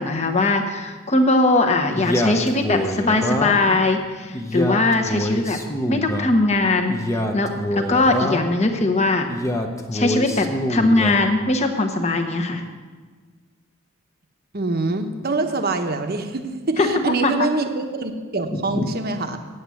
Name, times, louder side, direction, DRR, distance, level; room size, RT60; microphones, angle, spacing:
voice 1, 0.0-5.6 5.9-9.3 9.9-12.6 16.8-16.9 17.2-17.3 18.5-18.9, left 2 dB, 35° left, 4 dB, 1.1 m, -20 dB
Male speech man speaking, 1.9-3.8 4.3-6.3 6.9-8.6 9.3-11.3, equal, 15° left, 0.8 m, -25 dB
voice 2, 14.5-19.4, right 3 dB, 50° right, 6 dB, 1.0 m, -25 dB
9.1 x 8.0 x 8.4 m, 1.5 s
head